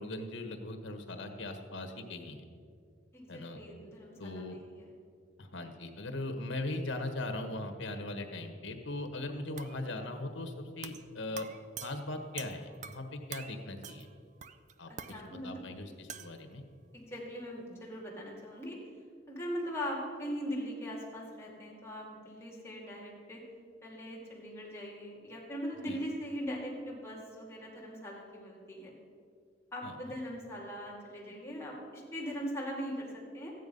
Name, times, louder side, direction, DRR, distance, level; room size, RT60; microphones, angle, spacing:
voice 1, 0.0-2.4 3.3-3.6 4.2-4.6 5.4-11.5 11.8-14.1 14.8-16.6 25.9-26.0 29.8-29.9, left 2 dB, 90° left, 6 dB, 1.4 m, -39 dB
voice 2, 3.1-4.9 14.9-15.6 16.9-18.8 19.3-23.4 23.8-28.9 29.7-33.5, equal, 15° left, -3 dB, 2.3 m, -40 dB
sound 1, 9.6-9.8 10.8-11.1 11.4-13.1 13.3-13.6 13.8-14.1 14.4-15.2 16.1-16.4, right 7 dB, 40° right, 0.4 m, -45 dB
14.0 x 9.4 x 5.4 m, 2.2 s
head